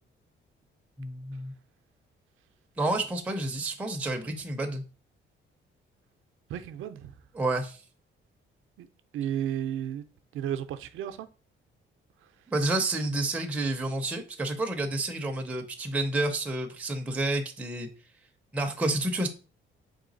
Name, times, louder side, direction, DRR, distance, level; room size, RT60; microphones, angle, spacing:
voice 1, 1.0-1.5 2.8-4.8 7.3-7.8 12.5-17.9 18.5-19.3, right 2 dB, 5° right, 0.4 m, -29 dB
voice 2, 6.5-7.2 8.8-8.9 9.1-10.0 10.3-11.3, right 10 dB, 80° right, 0.5 m, -33 dB
3.9 x 3.1 x 3.8 m
cardioid pair, 175°, 21 cm